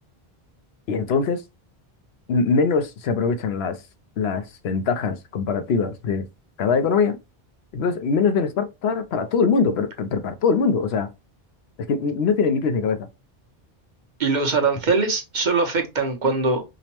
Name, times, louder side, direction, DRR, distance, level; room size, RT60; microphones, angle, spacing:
voice 1, 0.9-1.4 2.3-3.8 4.2-6.3 6.6-7.2 7.7-11.1 11.9-13.1, left 5 dB, 85° left, 0.9 m, -22 dB
voice 2, 14.2-16.6, right 4 dB, 50° right, 0.9 m, -22 dB
5.1 x 2.1 x 2.9 m
omnidirectional pair, 1.0 m